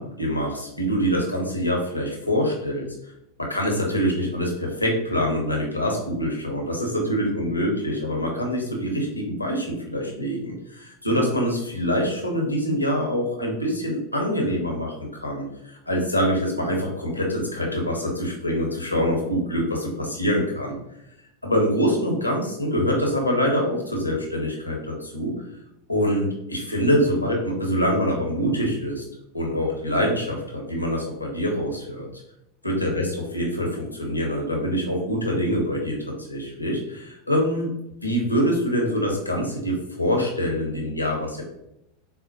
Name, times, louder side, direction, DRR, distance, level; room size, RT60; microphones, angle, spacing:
voice 1, 0.0-2.9 3.4-20.8 21.4-25.4 25.9-29.0 29.3-32.1 32.6-37.7 38.0-41.4, equal, 90° left, 0 dB, 0.7 m, -25 dB
4.1 x 2.0 x 2.8 m, 0.82 s
figure-of-eight pair, 85°, 0 cm